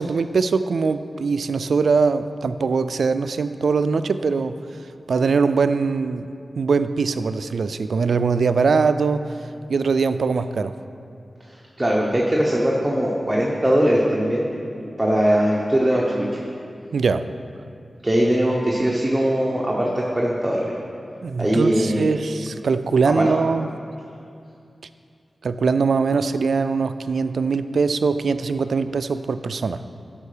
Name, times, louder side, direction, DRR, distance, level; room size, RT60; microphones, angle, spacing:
voice 1, 0.0-4.6 5.1-9.3 9.7-10.7 16.9-17.3 21.2-23.7 25.4-29.8, right 4 dB, 85° right, 12 dB, 0.3 m, -22 dB
voice 2, 11.8-14.5 15.0-16.4 18.0-20.7 21.4-22.0 23.0-23.3, equal, 10° right, -3 dB, 0.9 m, -20 dB
12.5 x 5.3 x 5.0 m, 2.5 s
wide cardioid pair, 105°, 0 cm